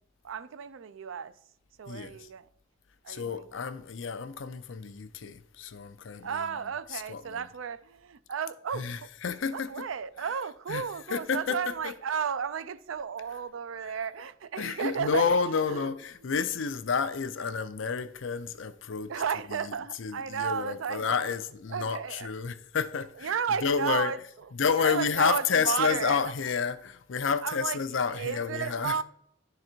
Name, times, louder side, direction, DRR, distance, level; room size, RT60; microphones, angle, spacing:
voice 1, 0.2-1.3 1.8-2.5 3.0-3.2 6.2-9.1 9.5-15.3 15.7-15.9 19.1-21.3 21.7-22.3 23.2-24.2 24.8-26.2 27.4-27.8 28.1-29.0, right 7 dB, 75° right, 0.4 m, -33 dB
voice 2, 1.9-2.3 3.1-6.5 6.9-7.5 8.7-9.9 10.2-10.3 10.7-11.9 13.8-13.9 14.6-19.1 19.5-23.4 23.6-24.1 24.5-29.0, left 6 dB, 70° left, 0.5 m, -30 dB
10.5 x 3.9 x 4.4 m
head